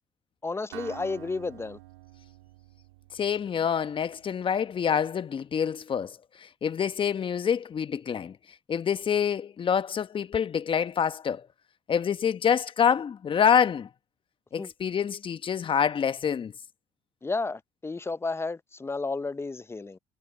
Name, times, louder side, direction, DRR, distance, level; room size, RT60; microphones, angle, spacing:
voice 1, 0.4-1.8 14.6-14.7 17.2-20.0, left 3 dB, 20° left, 0.8 m, -32 dB
Acoustic guitar, 0.7-4.6, right 19 dB, 90° right, 2.3 m, -48 dB
voice 2, 3.1-8.4 8.7-11.5 11.9-13.9 14.5-16.5, left 7 dB, 40° left, 1.3 m, -26 dB
hypercardioid pair, 60°, 13 cm